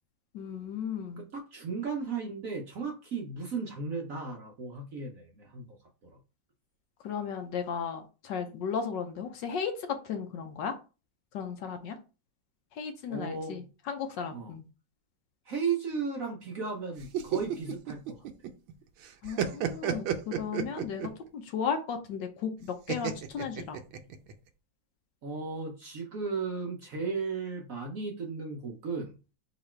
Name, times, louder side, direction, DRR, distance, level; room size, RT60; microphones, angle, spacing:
voice 1, 0.3-1.2 7.0-10.7 11.3-12.0 12.7-14.6 19.2-23.8, left 6 dB, 70° left, 6 dB, 1.2 m, -35 dB
voice 2, 1.2-5.7 13.1-13.6 14.3-14.5 15.5-18.3 25.2-29.1, right 5 dB, 60° right, 1 dB, 0.9 m, -35 dB
sound 1, 17.0-18.7 19.0-21.2 22.9-24.3, right 9 dB, 85° right, 1.4 m, -32 dB
4.0 x 3.0 x 4.3 m, 0.32 s
omnidirectional pair, 2.3 m